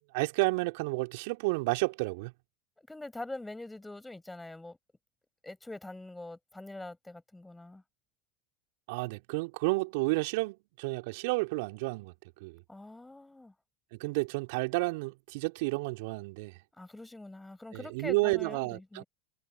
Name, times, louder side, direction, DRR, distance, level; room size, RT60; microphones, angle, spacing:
voice 1, 0.1-2.3 8.9-12.1 12.4-12.6 13.9-16.6 17.7-19.0, right 26 dB, 60° right, 3.2 m, -31 dB
voice 2, 2.8-4.8 5.4-7.8 12.7-13.5 16.8-19.1, left 2 dB, 10° left, 7.5 m, -44 dB
figure-of-eight pair, 80°, 0 cm